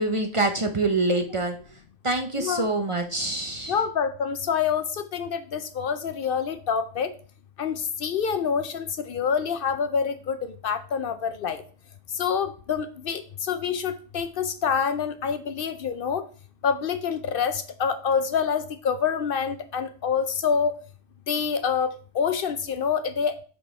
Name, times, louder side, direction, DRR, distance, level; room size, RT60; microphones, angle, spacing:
voice 1, 0.0-1.6 2.0-3.7, right 2 dB, 35° right, 5 dB, 0.7 m, -25 dB
voice 2, 2.3-2.7 3.7-7.1 7.6-11.6 12.1-16.2 16.6-20.7 21.3-23.4, left 6 dB, 65° left, 11 dB, 0.7 m, -27 dB
7.1 x 3.8 x 4.9 m, 0.41 s
omnidirectional pair, 1.1 m